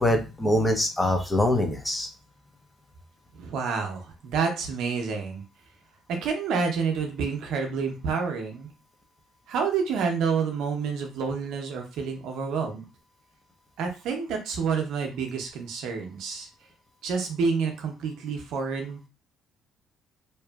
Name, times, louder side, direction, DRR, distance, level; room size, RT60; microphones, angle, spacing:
voice 1, 0.0-2.1, left 1 dB, 15° left, 3 dB, 0.7 m, -23 dB
voice 2, 3.3-5.4 6.1-8.7 9.5-12.8 13.8-16.5 17.0-19.1, right 5 dB, 75° right, 4 dB, 0.7 m, -28 dB
2.8 x 2.3 x 2.3 m, 0.29 s
supercardioid pair, 65°, 0 cm